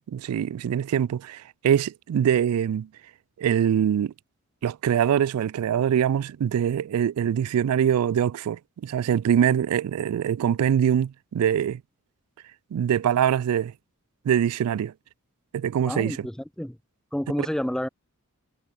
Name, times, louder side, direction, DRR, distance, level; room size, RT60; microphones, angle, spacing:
voice 1, 0.0-2.9 3.4-4.1 4.6-11.8 12.7-13.7 14.3-14.9 15.5-16.3, right 9 dB, 80° right, 0.3 m, -23 dB
voice 2, 15.9-16.8 17.1-17.9, equal, 5° left, 0.3 m, -29 dB
head